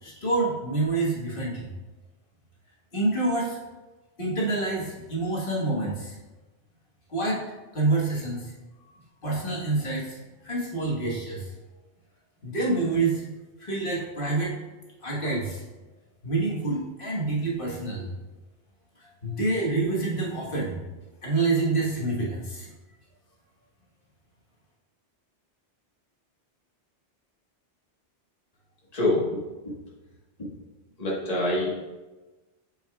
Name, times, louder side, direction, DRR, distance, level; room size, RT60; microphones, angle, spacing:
voice 1, 0.0-1.7 2.9-3.6 4.2-6.2 7.1-7.4 7.7-8.5 9.2-11.5 12.4-13.2 13.6-14.6 15.0-15.6 16.2-18.2 19.2-20.8 21.2-22.7, right 3 dB, 50° left, -4 dB, 1.6 m, -27 dB
voice 2, 28.9-29.2 31.0-31.7, left 1 dB, 35° left, -6 dB, 1.5 m, -24 dB
7.8 x 5.6 x 2.3 m, 1.2 s
omnidirectional pair, 1.2 m